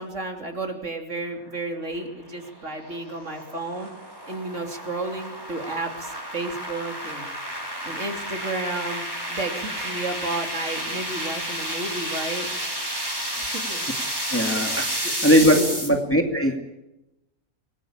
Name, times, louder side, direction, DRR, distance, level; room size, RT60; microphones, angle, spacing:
voice 1, 0.0-3.9 4.3-7.3 7.8-12.5 13.4-13.9 15.0-15.2 15.5-15.8, right 2 dB, 55° right, 4 dB, 3.5 m, -32 dB
sound 1, 1.9-15.9, equal, 15° right, 4.3 m, -31 dB
voice 2, 14.3-16.6, equal, 10° left, 3 dB, 2.4 m, -20 dB
26.0 x 20.5 x 8.9 m, 0.96 s
omnidirectional pair, 1.5 m